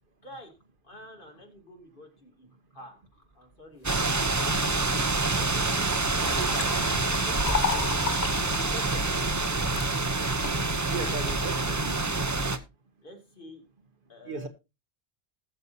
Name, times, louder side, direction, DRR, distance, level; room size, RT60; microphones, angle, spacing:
voice 1, 0.8-2.5 2.7-3.9 5.3-7.9 8.5-9.2 13.0-13.6 14.1-14.5, left 1 dB, 60° left, 2.8 m, -48 dB
sound 1, 3.0-10.8, right 1 dB, 40° left, 2.0 m, -44 dB
sound 2, 3.8-12.6, right 3 dB, 20° right, 0.6 m, -27 dB
Liquid, 5.4-5.5 5.9-9.9 10.4-10.9, left 7 dB, 85° left, 1.0 m, -34 dB
voice 2, 6.2-7.3 10.9-12.0 14.2-14.5, right 4 dB, 60° right, 1.2 m, -37 dB
20.0 x 6.8 x 2.7 m
omnidirectional pair, 1.0 m